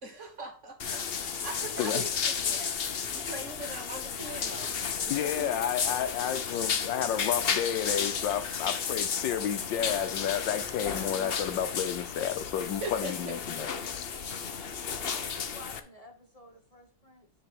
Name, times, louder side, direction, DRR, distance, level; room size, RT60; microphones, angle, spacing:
voice 1, 0.0-1.0 1.4-2.7 3.1-4.7 5.0-5.6 6.2-6.3 9.0-9.1 9.4-9.5 12.8-13.3 13.7-13.8 14.2-14.4, right 2 dB, 45° right, 1.6 m, -41 dB
sound 1, 0.8-15.8, left 6 dB, 55° left, 0.7 m, -33 dB
voice 2, 5.1-13.7 13.9-14.1, left 9 dB, 85° left, 1.5 m, -31 dB
voice 3, 15.0-17.3, left 1 dB, 25° left, 1.0 m, -51 dB
10.0 x 4.0 x 6.1 m
omnidirectional pair, 1.9 m